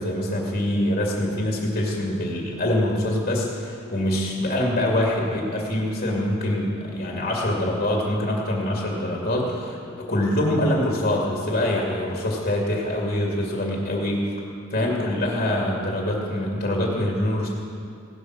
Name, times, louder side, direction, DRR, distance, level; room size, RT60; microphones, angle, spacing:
voice 1, 0.0-14.3 14.7-17.5, left 1 dB, 45° left, -2 dB, 2.4 m, -24 dB
17.5 x 10.5 x 6.1 m, 2.4 s
head